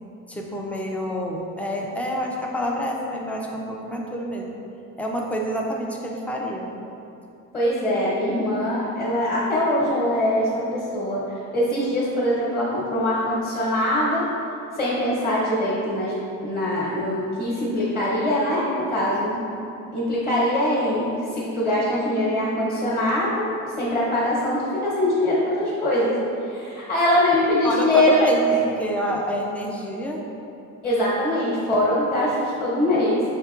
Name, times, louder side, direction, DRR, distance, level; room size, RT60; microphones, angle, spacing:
voice 1, 0.3-4.6 5.0-6.7 8.4-8.5 19.2-19.7 21.9-22.1 27.6-30.2, equal, 5° left, -1 dB, 0.3 m, -28 dB
voice 2, 7.5-14.2 14.7-16.1 16.4-19.4 19.9-28.2 30.8-33.2, left 1 dB, 25° left, -8 dB, 1.1 m, -23 dB
5.6 x 3.6 x 2.4 m, 2.7 s
cardioid pair, 140°, 33 cm